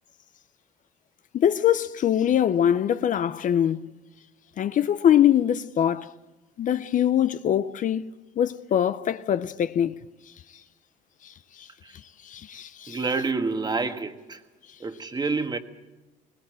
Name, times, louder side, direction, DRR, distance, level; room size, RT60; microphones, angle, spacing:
voice 1, 1.3-3.9 4.6-6.1 6.6-8.1 8.4-10.0 11.2-11.3 11.6-11.7 12.2-13.0, left 10 dB, 50° left, 0.7 m, -23 dB
voice 2, 12.9-14.4 14.8-15.6, right 4 dB, 25° right, 1.5 m, -28 dB
20.0 x 19.5 x 7.7 m
cardioid pair, 110°, 17 cm